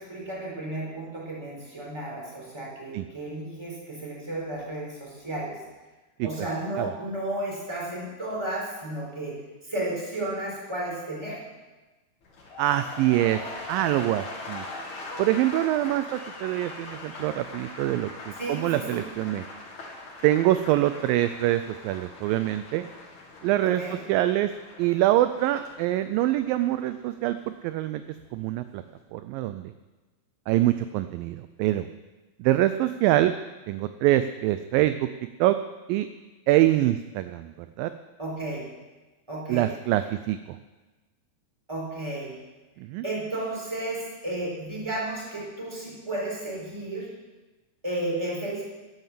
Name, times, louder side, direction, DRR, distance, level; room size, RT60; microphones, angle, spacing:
voice 1, 0.0-5.6 6.2-9.3 9.6-11.4 18.3-19.0 23.6-23.9 38.2-38.6 39.3-39.7 41.7-42.3 43.0-47.1 47.8-48.6, right 1 dB, 5° right, -4 dB, 4.3 m, -33 dB
sound 1, 12.2-28.3 28.6-29.0, left 2 dB, 50° left, 3.4 m, -42 dB
voice 2, 12.6-13.4 13.7-14.6 15.2-19.4 20.2-22.8 23.4-23.8 24.1-24.5 24.8-28.0 28.3-28.8 29.1-29.7 30.5-31.9 32.4-33.3 33.7-35.1 35.4-35.6 35.9-36.1 36.5-37.9 39.5-40.4 42.8-43.0, right 14 dB, 85° right, 11 dB, 2.1 m, -24 dB
12.5 x 11.0 x 7.5 m, 1.2 s
omnidirectional pair, 4.5 m